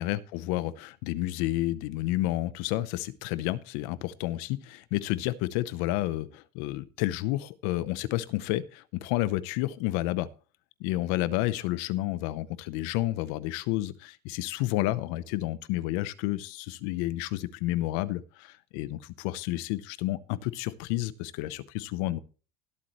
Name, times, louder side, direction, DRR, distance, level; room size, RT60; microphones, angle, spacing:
voice 1, 0.0-10.3 10.8-22.2, left 16 dB, 65° left, 18 dB, 0.8 m, -30 dB
19.5 x 8.3 x 3.1 m, 0.36 s
cardioid pair, 175°, 20 cm